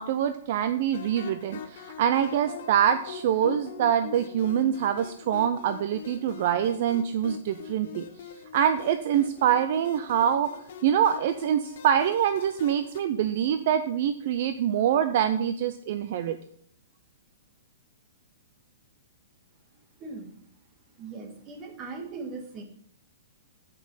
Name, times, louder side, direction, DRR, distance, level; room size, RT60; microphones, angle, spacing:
voice 1, 0.0-8.1 8.5-10.5 10.8-16.4, right 9 dB, 55° right, 10 dB, 0.5 m, -25 dB
sound 1, 0.9-13.0, left 7 dB, 60° left, 1.0 m, -43 dB
voice 2, 20.0-20.4 21.0-22.6, right 3 dB, 30° right, 4 dB, 1.7 m, -39 dB
7.7 x 6.1 x 5.5 m, 0.63 s
hypercardioid pair, 145°, 0 cm